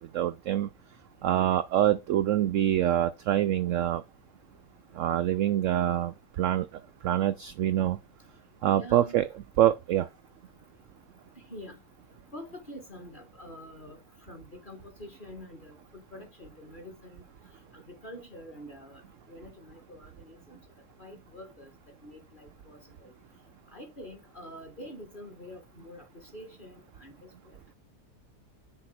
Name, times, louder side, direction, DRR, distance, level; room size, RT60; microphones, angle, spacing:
voice 1, 0.1-0.7 1.2-4.0 4.9-6.7 7.0-8.0 8.6-9.3 9.6-10.1, right 12 dB, 70° right, 0.7 m, -25 dB
voice 2, 8.7-9.2 11.4-11.8 12.3-14.0 14.3-17.2 17.7-19.0 19.3-20.6 21.0-21.7 22.0-23.1 23.7-27.6, left 1 dB, 30° left, 1.8 m, -46 dB
6.4 x 4.4 x 5.8 m
omnidirectional pair, 1.8 m